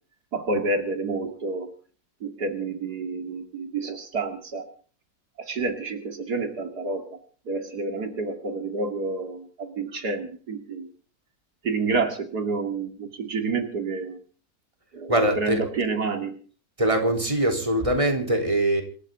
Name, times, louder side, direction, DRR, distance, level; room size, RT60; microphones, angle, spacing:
voice 1, 0.3-1.7 2.2-4.7 5.4-7.1 7.5-10.9 11.6-14.2 14.9-16.4, right 3 dB, 80° right, 6 dB, 2.9 m, -29 dB
voice 2, 15.1-15.6 16.8-18.8, right 1 dB, 20° right, 4 dB, 3.8 m, -22 dB
27.0 x 13.5 x 3.8 m, 0.41 s
omnidirectional pair, 1.7 m